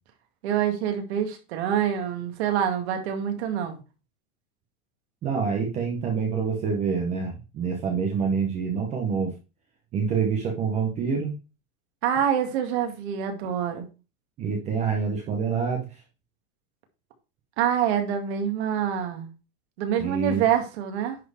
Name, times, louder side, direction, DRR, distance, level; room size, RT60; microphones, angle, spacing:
voice 1, 0.4-3.8 12.0-13.9 17.6-19.3 19.8-21.2, right 9 dB, 50° right, 5 dB, 2.2 m, -26 dB
voice 2, 5.2-9.3 9.9-11.3 14.4-15.8 20.0-20.4, right 6 dB, 15° right, 1 dB, 0.9 m, -26 dB
10.5 x 4.4 x 4.8 m, 0.32 s
supercardioid pair, 180°, 42 cm